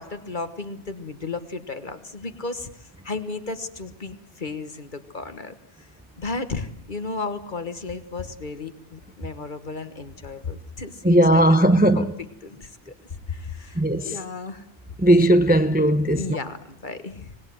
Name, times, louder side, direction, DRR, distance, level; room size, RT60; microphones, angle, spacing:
voice 1, 0.0-5.9 6.2-12.1 12.4-12.9 13.3-14.6 16.1-17.3, left 3 dB, 40° left, 1.5 m, -34 dB
voice 2, 11.0-12.0 13.8-14.1 15.0-16.2, right 1 dB, 10° right, 0.7 m, -17 dB
26.0 x 19.5 x 7.7 m
omnidirectional pair, 1.2 m